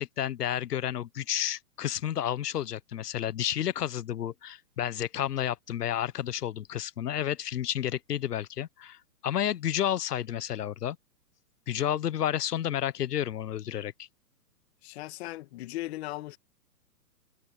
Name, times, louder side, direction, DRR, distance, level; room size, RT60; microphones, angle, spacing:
voice 1, 0.0-9.0 9.2-11.0 11.7-13.9, left 11 dB, 70° left, 1.3 m, -31 dB
voice 2, 14.8-16.4, left 17 dB, 40° left, 2.1 m, -38 dB
hypercardioid pair, 145°, 48 cm